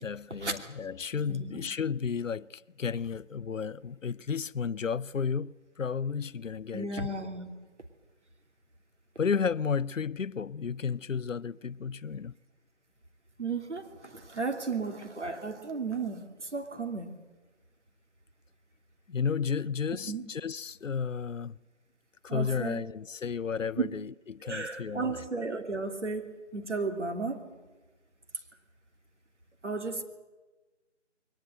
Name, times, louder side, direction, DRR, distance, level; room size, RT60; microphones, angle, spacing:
voice 1, 0.0-6.9 9.2-12.3 19.1-21.6 22.2-25.2, left 6 dB, 90° left, 0.7 m, -33 dB
voice 2, 1.3-1.6 6.7-7.5 13.4-17.1 20.1-20.2 22.3-22.8 23.8-23.9 24.4-27.4 29.6-30.0, right 4 dB, 65° right, 3.0 m, -34 dB
22.0 x 19.5 x 7.9 m
figure-of-eight pair, 165°, 37 cm